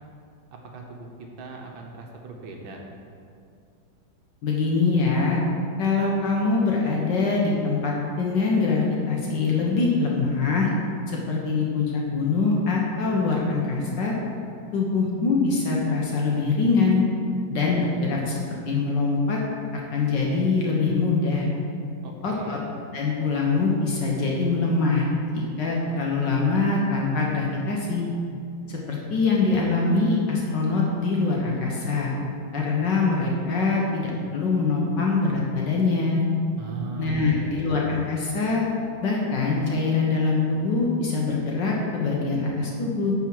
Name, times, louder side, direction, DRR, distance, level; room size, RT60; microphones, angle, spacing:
voice 1, 0.7-1.1 1.4-2.8 22.0-22.6 36.6-37.7, right 3 dB, 75° right, 1 dB, 1.6 m, -38 dB
voice 2, 4.4-5.4 5.8-10.7 11.1-14.1 14.7-17.0 17.5-19.4 19.9-21.5 22.2-22.6 22.9-25.1 25.3-28.1 28.7-32.1 32.5-36.2 37.0-38.6 39.0-43.1, left 4 dB, 65° left, -2 dB, 1.6 m, -23 dB
9.6 x 4.5 x 6.0 m, 2.4 s
omnidirectional pair, 2.2 m